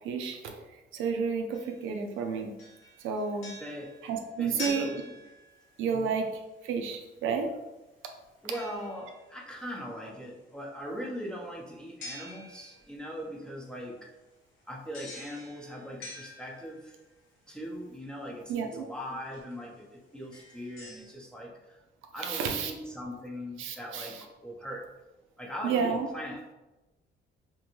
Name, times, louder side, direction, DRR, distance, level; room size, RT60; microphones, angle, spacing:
voice 1, 0.0-0.5 0.9-2.5 3.0-3.5 4.0-4.9 5.8-7.5 18.5-18.8 22.2-22.7 23.6-24.2 25.6-26.1, right 5 dB, 80° right, 4 dB, 0.4 m, -31 dB
sound 1, 1.5-2.2 2.6-5.9 8.5-9.4 12.0-13.0 14.9-17.0 18.6-18.7 19.3-19.5 20.2-21.1, left 1 dB, 90° left, 1.0 m, -45 dB
voice 2, 3.6-3.9 4.4-5.0 5.9-6.1 8.4-14.0 14.7-16.9 17.5-21.8 22.1-24.9 25.4-26.4, equal, 5° left, -3 dB, 0.7 m, -40 dB
2.6 x 2.2 x 3.0 m, 1.0 s
cardioid pair, 90°, 20 cm